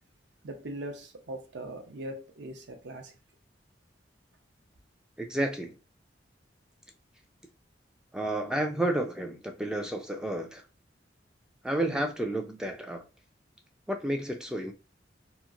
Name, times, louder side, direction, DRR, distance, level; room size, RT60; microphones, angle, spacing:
voice 1, 0.4-3.1, right 1 dB, 70° right, 0.6 m, -40 dB
voice 2, 5.2-5.8 8.1-10.6 11.6-13.1 13.9-14.7, right 1 dB, 5° right, 0.3 m, -31 dB
2.9 x 2.5 x 2.4 m
head